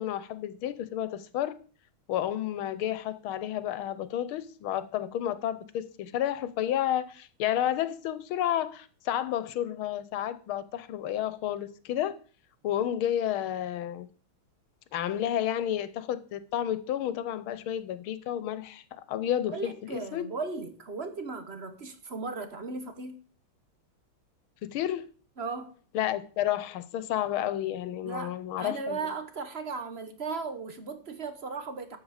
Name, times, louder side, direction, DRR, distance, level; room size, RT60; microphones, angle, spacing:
voice 1, 0.0-1.6 2.1-12.2 12.6-14.1 14.9-20.3 24.6-25.1 25.9-29.1, left 11 dB, 75° left, 1.6 m, -31 dB
voice 2, 19.5-23.2 25.4-25.7 28.0-32.0, right 4 dB, 40° right, 1.1 m, -36 dB
12.5 x 7.8 x 4.9 m
omnidirectional pair, 2.4 m